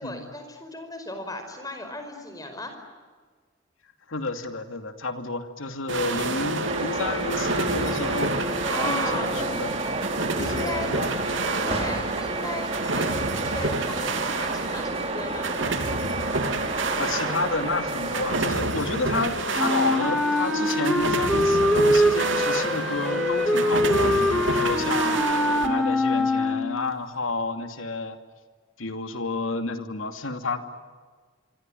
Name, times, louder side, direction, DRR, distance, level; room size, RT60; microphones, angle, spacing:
voice 1, 0.0-2.7 8.7-9.4 10.3-11.0 11.6-14.0 14.4-15.6, left 2 dB, 20° left, 7 dB, 5.0 m, -36 dB
voice 2, 4.1-8.4 8.8-9.7 10.4-11.1 17.0-25.2 25.6-28.2 28.8-30.6, left 3 dB, 80° left, 8 dB, 2.6 m, -30 dB
sound 1, 5.9-25.7, right 2 dB, 70° right, 3.0 m, -29 dB
sound 2, 6.6-18.5, right 2 dB, 30° right, 2.8 m, -31 dB
Wind instrument woodwind instrument, 19.5-26.9, left 1 dB, ahead, 2.5 m, -23 dB
26.0 x 25.5 x 9.2 m, 1.5 s
head